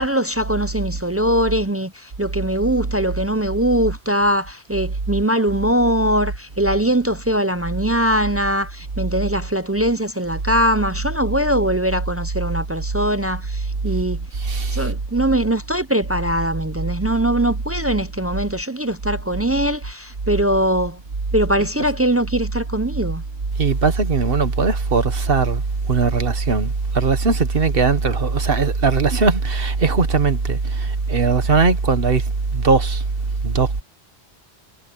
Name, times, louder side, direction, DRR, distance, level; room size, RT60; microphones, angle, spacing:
voice 1, 0.0-14.2 14.7-21.0 21.3-23.2, right 1 dB, 20° right, 0.4 m, -21 dB
voice 2, 14.4-14.9 23.6-25.6 25.9-32.2 32.5-33.0 33.4-33.7, right 4 dB, 55° right, 1.5 m, -19 dB
omnidirectional pair, 1.1 m